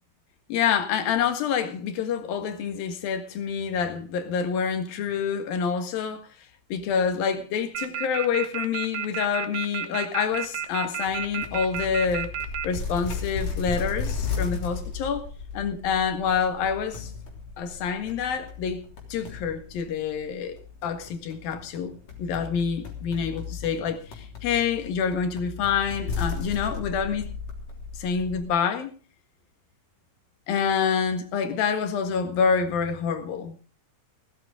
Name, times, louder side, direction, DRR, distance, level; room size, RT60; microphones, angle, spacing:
voice 1, 0.5-6.3 6.7-12.3 12.6-15.3 15.5-17.1 17.6-18.8 19.1-27.3 27.9-28.9 30.5-33.5, left 6 dB, 85° left, 3.5 m, -27 dB
sound 1, 7.7-12.6, right 11 dB, 65° right, 2.7 m, -30 dB
sound 2, 11.1-28.5, left 5 dB, 50° left, 4.4 m, -35 dB
19.0 x 13.0 x 3.7 m
omnidirectional pair, 4.0 m